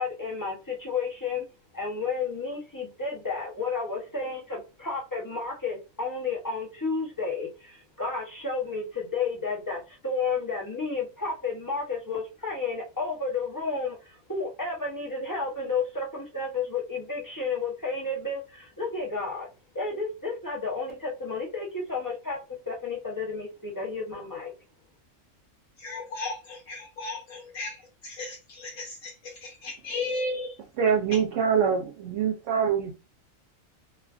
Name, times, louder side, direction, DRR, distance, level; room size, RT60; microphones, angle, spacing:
voice 1, 0.0-1.4 1.7-19.5 19.7-22.4 22.7-24.5, left 4 dB, 20° left, 0.6 m, -32 dB
voice 2, 25.8-30.6, left 2 dB, 75° left, 1.0 m, -35 dB
voice 3, 30.8-32.9, right 7 dB, 70° right, 0.9 m, -24 dB
3.1 x 2.3 x 2.4 m
omnidirectional pair, 1.4 m